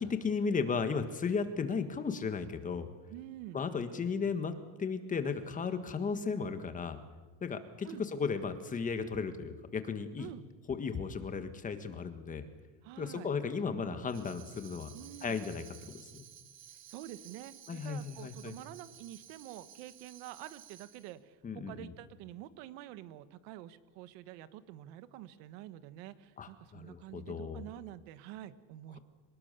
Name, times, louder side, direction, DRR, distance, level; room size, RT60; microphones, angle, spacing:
voice 1, 0.0-2.9 3.5-4.5 4.8-7.0 7.4-10.3 10.7-12.5 13.0-14.9 15.2-16.3 17.7-18.5 21.4-21.9 26.4-27.6, left 5 dB, 20° left, 9 dB, 1.6 m, -35 dB
voice 2, 3.1-3.6 7.8-8.0 10.2-10.4 12.8-13.3 13.7-14.1 14.9-15.4 16.9-29.0, right 13 dB, 85° right, 14 dB, 1.4 m, -48 dB
Tambourine, 14.1-21.2, right 9 dB, 35° right, 1.4 m, -55 dB
24.5 x 20.5 x 6.8 m, 1.3 s
cardioid pair, 160°, 36 cm